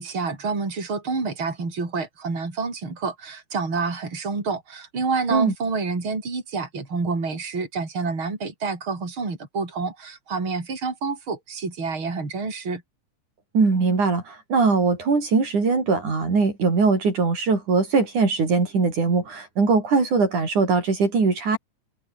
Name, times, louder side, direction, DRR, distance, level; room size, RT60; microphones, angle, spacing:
voice 1, 0.0-12.8, right 4 dB, 40° right, 6.1 m, -28 dB
voice 2, 13.5-21.6, right 4 dB, 70° right, 7.2 m, -21 dB
omnidirectional pair, 3.6 m